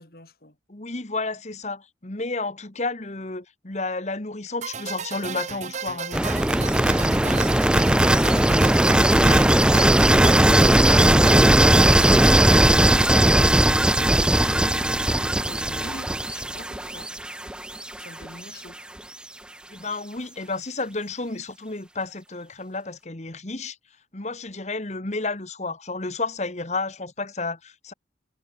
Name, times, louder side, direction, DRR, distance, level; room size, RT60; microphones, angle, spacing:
voice 1, 0.0-0.6 8.0-17.2 18.0-18.8, left 2 dB, 55° left, 4.8 m, -45 dB
voice 2, 0.7-7.1 19.7-23.8 24.1-27.9, left 3 dB, 40° left, 1.6 m, -31 dB
sound 1, 4.6-12.6, right 6 dB, 40° right, 0.9 m, -34 dB
sound 2, 6.1-18.1, right 1 dB, 5° right, 0.4 m, -18 dB
head